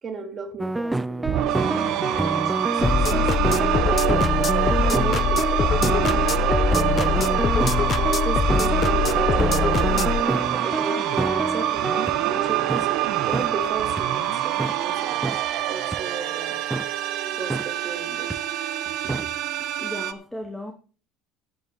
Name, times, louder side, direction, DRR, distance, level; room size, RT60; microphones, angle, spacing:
voice 1, 0.0-1.5 1.8-4.2 4.8-6.2 6.9-7.4 7.9-9.7 10.2-12.9 13.3-15.4 15.7-16.6 17.4-18.4 19.0-19.3, right 4 dB, 35° right, 3.5 m, -36 dB
sound 1, 0.6-12.2 12.7-12.8 13.3-13.5 14.0-14.1 14.6-14.7 15.2-15.4 15.9-16.0 16.7-16.8 17.5-17.6 18.3-18.4 19.1-19.2, right 2 dB, 10° right, 0.4 m, -27 dB
sound 2, 1.2-20.1, right 12 dB, 60° right, 1.1 m, -25 dB
sound 3, 2.8-10.2, left 8 dB, 40° left, 0.7 m, -23 dB
voice 2, 19.6-20.7, left 1 dB, 5° left, 2.0 m, -36 dB
13.5 x 8.5 x 4.2 m
hypercardioid pair, 70°, 0 cm